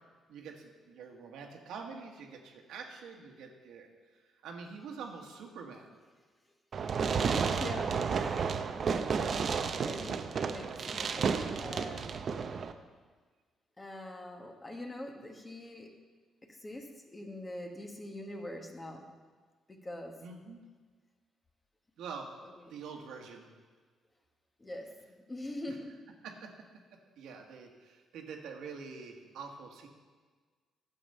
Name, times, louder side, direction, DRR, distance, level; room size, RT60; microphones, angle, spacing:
voice 1, 0.3-3.9 4.4-5.9 20.2-20.6 22.0-22.3 22.7-23.4 25.7-25.8 26.2-26.5 27.2-29.9, right 5 dB, 80° right, 2 dB, 1.5 m, -45 dB
Fireworks, 6.7-12.7, right 6 dB, 50° right, 0.6 m, -32 dB
voice 2, 7.2-8.5 8.9-9.6 9.8-12.5 13.8-15.9 16.5-19.1 19.7-20.2 22.4-22.7 24.6-26.0, left 1 dB, 20° left, 3 dB, 1.4 m, -44 dB
10.5 x 7.1 x 5.5 m, 1.5 s
cardioid pair, 90°, 0 cm